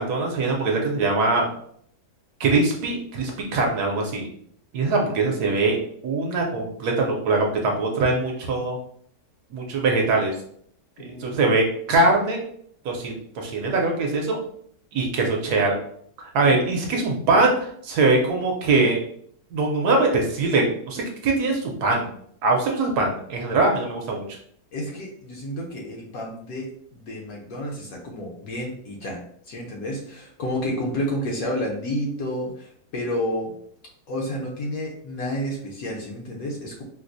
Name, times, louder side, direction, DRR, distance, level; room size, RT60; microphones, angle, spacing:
voice 1, 0.0-1.5 2.4-4.2 4.7-5.8 6.0-8.8 9.5-10.3 11.2-12.4 12.8-14.4 14.9-15.7 16.2-19.0 19.5-22.1 22.4-24.2, right 3 dB, 70° right, 1 dB, 1.1 m, -22 dB
voice 2, 11.0-11.4 24.7-33.6 34.1-36.8, equal, 65° left, -1 dB, 1.0 m, -30 dB
4.4 x 2.0 x 2.5 m, 0.64 s
omnidirectional pair, 1.9 m